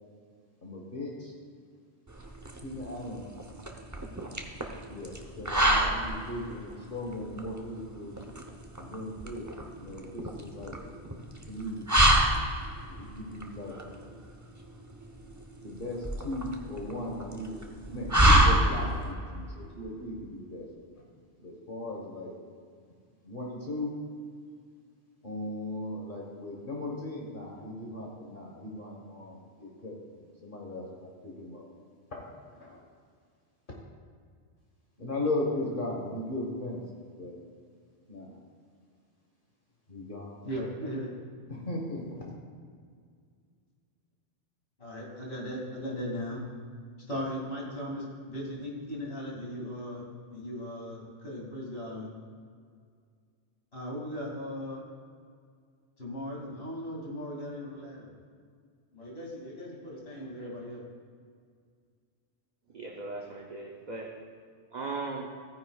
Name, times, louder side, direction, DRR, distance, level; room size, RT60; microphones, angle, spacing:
voice 1, 0.6-1.3 2.6-3.2 4.9-8.1 8.8-9.5 9.8-10.7 11.5-11.8 12.9-13.8 15.6-17.6 17.9-20.7 21.4-22.3 23.2-23.9 25.2-31.6 32.1-32.2 32.5-32.8 33.7-33.8 35.0-37.4 38.1-38.4 39.9-40.4 41.5-42.0, left 1 dB, 50° left, -2 dB, 1.5 m, -37 dB
sound 1, 2.1-19.1, right 1 dB, 20° right, 0.7 m, -28 dB
voice 2, 40.4-41.1 42.2-42.3 44.8-46.4 47.1-50.0 50.3-52.1 53.7-54.8 56.0-58.1 58.9-60.8, equal, 65° left, -4 dB, 2.8 m, -37 dB
voice 3, 62.7-64.2 64.7-65.3, right 3 dB, 45° right, -1 dB, 0.9 m, -37 dB
15.5 x 9.7 x 2.4 m, 2.1 s
omnidirectional pair, 1.1 m